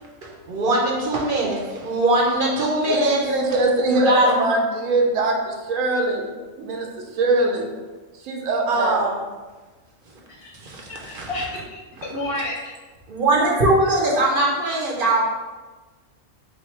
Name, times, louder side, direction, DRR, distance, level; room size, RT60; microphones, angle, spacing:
voice 1, 0.2-3.2 3.9-4.4 8.7-9.2 10.6-11.5 13.1-15.2, right 2 dB, 50° right, -2 dB, 0.8 m, -21 dB
voice 2, 2.8-6.3 6.6-7.7 8.2-9.0, right 2 dB, 90° right, 2 dB, 1.0 m, -22 dB
voice 3, 10.9-12.7, left 1 dB, 60° left, 0 dB, 0.7 m, -31 dB
3.2 x 2.7 x 4.3 m, 1.3 s
omnidirectional pair, 1.3 m